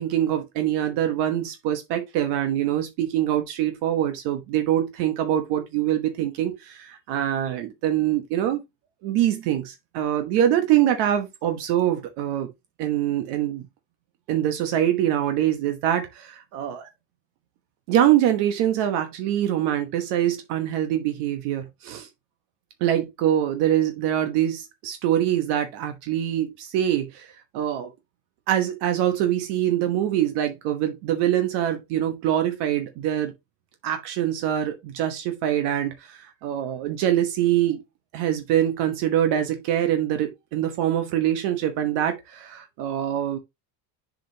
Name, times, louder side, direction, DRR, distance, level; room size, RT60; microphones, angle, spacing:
voice 1, 0.0-8.6 9.0-12.5 12.8-13.7 14.3-16.9 17.9-22.1 22.8-27.3 27.5-27.9 28.5-33.3 33.8-37.8 38.1-43.4, right 11 dB, 65° right, 1.2 m, -24 dB
7.1 x 5.1 x 2.8 m
supercardioid pair, 125°, 43 cm